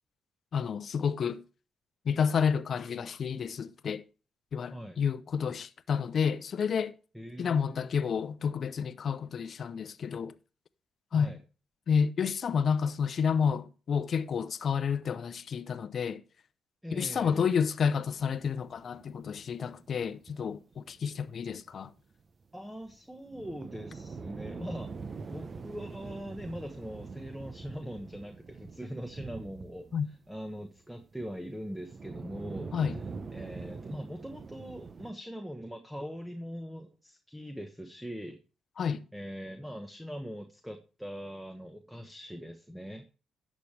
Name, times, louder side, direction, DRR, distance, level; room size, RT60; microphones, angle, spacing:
voice 1, 0.5-1.4 2.0-4.0 4.5-6.9 7.4-10.3 11.1-11.4 11.9-16.2 16.9-21.9 29.9-30.1 32.7-33.0 38.8-39.0, left 6 dB, 50° left, 0.7 m, -30 dB
voice 2, 7.1-8.1 11.1-11.4 16.8-17.5 22.5-24.9 25.3-32.8 33.3-38.4 39.1-43.1, equal, ahead, 1.2 m, -41 dB
sound 1, 18.2-21.2 21.6-21.7 21.8-21.9 22.2-22.3 22.8-30.5 30.8-35.1, right 4 dB, 40° right, 0.8 m, -44 dB
11.5 x 7.4 x 3.3 m
cardioid pair, 90°, 0 cm